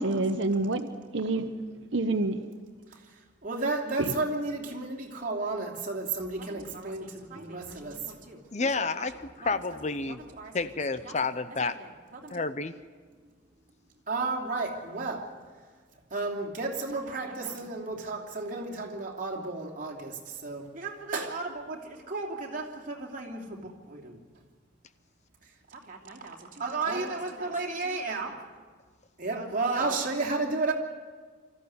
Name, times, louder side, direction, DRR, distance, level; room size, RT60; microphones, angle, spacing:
voice 1, 0.0-1.5 1.9-2.5 4.0-4.1, right 2 dB, 75° right, 1.0 m, -28 dB
voice 2, 3.4-9.6 10.1-10.7 11.0-11.1 11.5-12.4 14.1-15.3 16.1-24.2 25.7-28.4 29.2-30.7, right 3 dB, 45° right, 3.0 m, -33 dB
voice 3, 8.5-10.2 10.5-11.8 12.3-12.7, left 3 dB, 35° left, 0.7 m, -30 dB
24.5 x 14.5 x 9.6 m
head